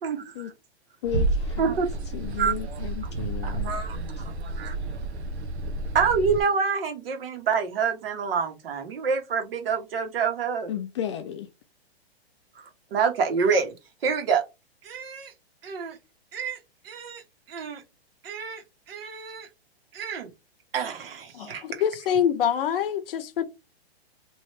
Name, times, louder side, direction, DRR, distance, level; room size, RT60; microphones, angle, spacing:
voice 1, 0.0-0.5 1.6-1.9 2.4-2.5 3.4-4.0 4.6-4.7 5.9-10.7 12.5-12.6 12.9-13.7 14.0-14.4 14.8-15.3 15.6-16.0 16.3-16.6 16.8-17.2 17.5-17.8 18.2-18.6 18.9-19.5 19.9-20.3 20.7-21.6, right 6 dB, 60° right, 1.3 m, -27 dB
voice 2, 1.0-1.8 2.1-3.8 4.2-4.3 10.7-11.5, left 9 dB, 30° left, 0.4 m, -34 dB
sound 1, 1.0-6.4, right 2 dB, 90° right, 0.8 m, -30 dB
voice 3, 21.3-23.4, left 9 dB, 60° left, 0.7 m, -25 dB
3.1 x 2.7 x 3.1 m
hypercardioid pair, 140°, 32 cm